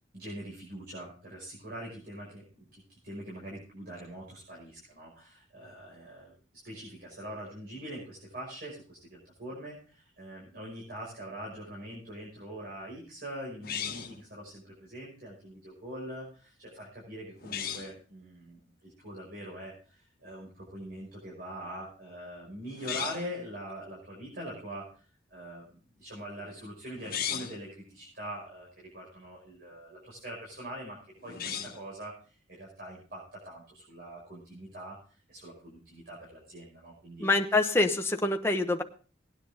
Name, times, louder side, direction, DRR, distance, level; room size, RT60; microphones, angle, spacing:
voice 1, 0.1-6.3 6.6-37.3, equal, 50° right, -4 dB, 5.9 m, -43 dB
sound 1, 13.6-14.2 17.4-17.9 22.7-23.4 27.0-27.6 31.2-31.9, left 8 dB, 50° left, 1.4 m, -36 dB
voice 2, 37.2-38.8, left 2 dB, 15° left, 5 dB, 1.0 m, -25 dB
18.5 x 10.0 x 3.8 m, 0.39 s
head